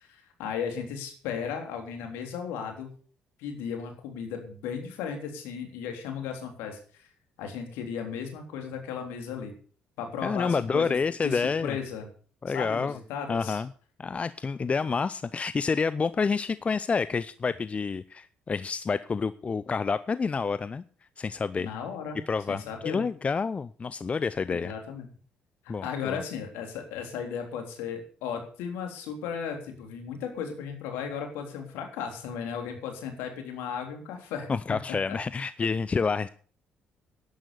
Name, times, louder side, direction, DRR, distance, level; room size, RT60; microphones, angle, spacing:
voice 1, 0.0-2.9 3.4-7.1 7.4-9.5 10.0-11.0 11.2-12.1 12.5-13.6 21.6-22.2 22.5-23.0 24.5-25.1 25.6-35.2, left 7 dB, 70° left, 4 dB, 3.5 m, -35 dB
voice 2, 10.2-11.8 12.4-13.0 13.3-13.7 14.0-20.8 21.2-21.7 22.3-24.7 25.7-26.2 34.5-36.3, left 5 dB, 35° left, 16 dB, 0.6 m, -28 dB
11.5 x 11.0 x 7.0 m, 0.44 s
hypercardioid pair, 50°, 4 cm